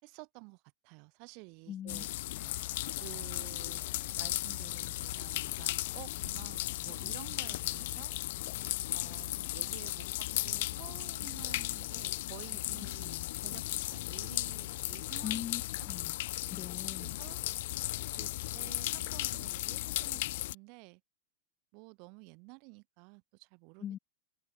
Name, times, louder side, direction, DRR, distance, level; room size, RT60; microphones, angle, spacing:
voice 1, 0.0-2.1 3.0-3.8 4.2-8.1 8.9-15.5 15.8-15.9 17.0-17.4 18.1-21.0 21.7-23.9, right 36 dB, 50° right, 7.1 m, -52 dB
voice 2, 1.7-2.0 13.0-13.3 15.2-15.6 15.9-16.2 16.5-17.2 23.8-24.0, left 10 dB, 30° left, 1.7 m, -41 dB
sound 1, 1.9-20.5, left 18 dB, 65° left, 1.0 m, -36 dB
sound 2, 2.4-12.1, left 3 dB, 10° left, 5.4 m, -63 dB
hypercardioid pair, 120°, 0 cm